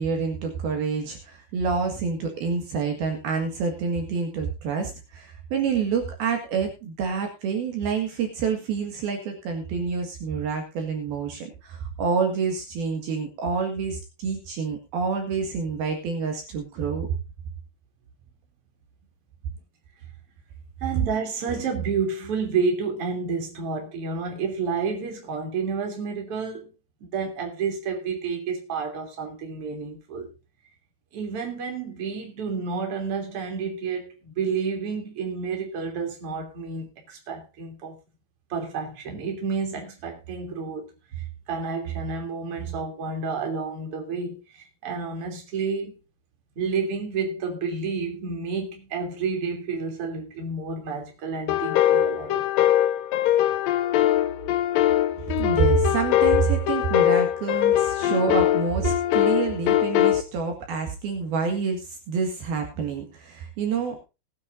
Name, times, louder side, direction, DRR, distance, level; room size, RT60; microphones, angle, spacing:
voice 1, 0.0-17.1 20.9-21.0 55.2-64.0, right 5 dB, 65° right, 3.6 m, -27 dB
voice 2, 20.8-26.7 27.0-30.3 31.1-38.0 38.5-46.0 46.6-52.4 58.0-58.3, right 5 dB, 35° right, 3.5 m, -30 dB
sound 1, 51.5-60.2, left 12 dB, 90° left, 2.0 m, -22 dB
20.0 x 9.7 x 2.6 m
omnidirectional pair, 4.9 m